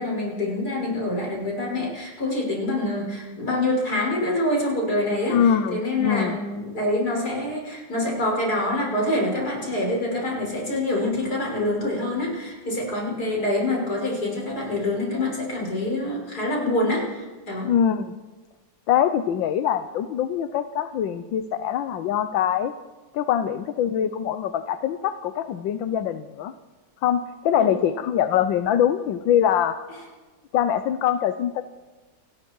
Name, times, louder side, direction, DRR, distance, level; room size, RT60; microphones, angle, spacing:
voice 1, 0.0-17.7 27.6-27.7, left 1 dB, 55° left, -2 dB, 6.7 m, -26 dB
voice 2, 5.3-6.4 17.7-18.2 18.9-22.7 23.1-26.5 27.0-29.8 30.5-31.6, left 9 dB, 85° left, 10 dB, 1.6 m, -23 dB
28.5 x 19.5 x 4.7 m, 1.3 s
omnidirectional pair, 2.0 m